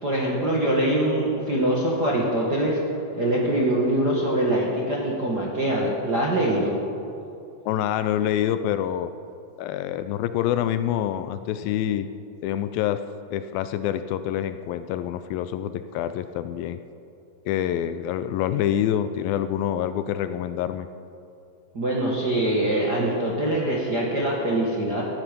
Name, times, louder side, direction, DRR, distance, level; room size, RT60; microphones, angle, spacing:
voice 1, 0.0-2.8 3.1-6.7 21.7-25.0, right 1 dB, 45° right, -3 dB, 1.4 m, -23 dB
voice 2, 7.7-9.1 9.6-12.1 12.4-13.0 13.3-16.8 17.5-20.9, left 11 dB, 80° left, 11 dB, 2.3 m, -26 dB
17.5 x 14.5 x 5.2 m, 2.6 s
omnidirectional pair, 4.3 m